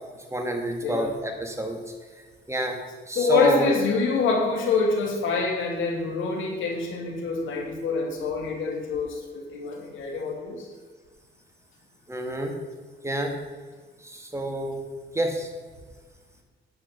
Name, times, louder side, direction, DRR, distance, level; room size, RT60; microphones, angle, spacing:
voice 1, 0.3-1.8 2.5-2.8 3.1-3.7 12.1-12.5 13.0-13.3 14.0-14.8 15.1-15.5, right 1 dB, 15° right, 3 dB, 2.3 m, -28 dB
voice 2, 0.8-1.1 3.1-10.7, left 4 dB, 80° left, 1 dB, 2.8 m, -26 dB
10.5 x 9.1 x 6.0 m, 1.5 s
cardioid pair, 90°, 20 cm